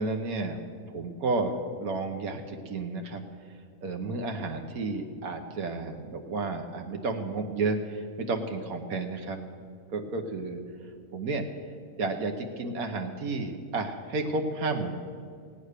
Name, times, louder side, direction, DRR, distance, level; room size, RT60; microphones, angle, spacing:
voice 1, 0.0-3.2 3.8-9.4 9.9-10.6 11.1-11.5 12.0-15.0, right 3 dB, 80° right, 4 dB, 1.4 m, -32 dB
17.0 x 8.9 x 6.6 m, 2.2 s
omnidirectional pair, 1.5 m